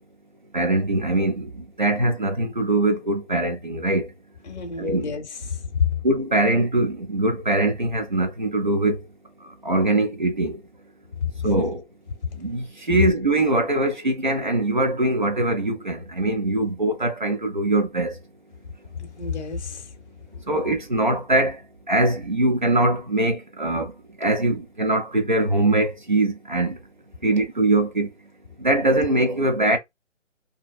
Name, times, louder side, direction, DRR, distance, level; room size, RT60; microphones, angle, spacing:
voice 1, 0.5-1.5 1.8-4.1 4.8-5.1 6.0-9.0 9.6-10.6 11.4-11.8 12.4-18.2 20.5-21.6 21.9-23.9 24.2-26.8 27.2-28.1 28.6-29.8, right 2 dB, 40° right, 0.4 m, -22 dB
voice 2, 4.4-5.9 11.2-11.3 11.6-11.7 19.0-19.9, left 6 dB, 60° left, 0.8 m, -28 dB
2.6 x 2.0 x 2.3 m
hypercardioid pair, 175°, 38 cm